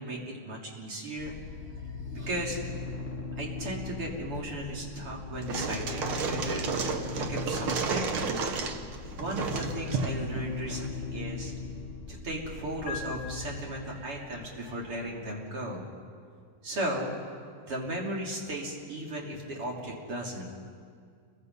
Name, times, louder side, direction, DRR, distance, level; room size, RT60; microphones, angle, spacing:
voice 1, 0.0-1.4 1.7-2.6 3.4-6.7 7.1-8.2 9.1-11.5 12.1-15.8 16.6-17.1 17.6-20.5, right 1 dB, 40° right, -2 dB, 3.7 m, -36 dB
sound 1, 1.2-15.4, left 4 dB, 25° left, 1.3 m, -40 dB
sound 2, 4.3-12.5 12.9-13.0, left 6 dB, 60° left, 9.6 m, -50 dB
sound 3, 5.4-10.9, right 5 dB, 55° right, 1.5 m, -32 dB
29.0 x 22.5 x 5.5 m, 2.2 s
omnidirectional pair, 4.0 m